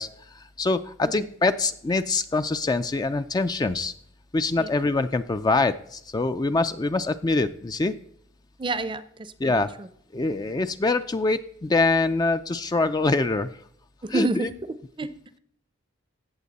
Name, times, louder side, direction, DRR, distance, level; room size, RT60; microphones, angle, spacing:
voice 1, 0.0-3.9 4.3-8.0 9.4-9.7 10.1-13.6 14.1-14.5, left 3 dB, 20° left, 10 dB, 0.4 m, -24 dB
voice 2, 8.6-9.5 14.0-15.4, right 2 dB, 25° right, 14 dB, 0.6 m, -30 dB
16.5 x 7.3 x 4.1 m, 0.67 s
head